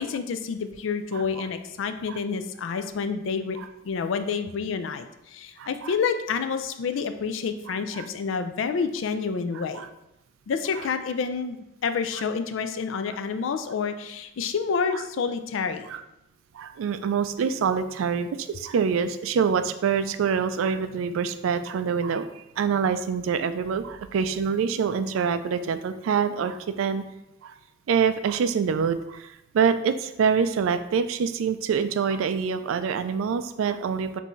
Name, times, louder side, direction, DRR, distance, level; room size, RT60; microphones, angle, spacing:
voice 1, 0.0-3.6 3.8-9.8 10.5-15.9, left 5 dB, 70° left, 9 dB, 0.4 m, -28 dB
voice 2, 1.1-1.4 2.1-2.2 5.6-5.9 7.7-8.1 9.7-9.9 15.9-16.0 16.5-27.0 27.4-27.5 27.9-34.2, right 6 dB, 85° right, 10 dB, 0.3 m, -26 dB
5.4 x 2.6 x 3.0 m, 0.87 s
head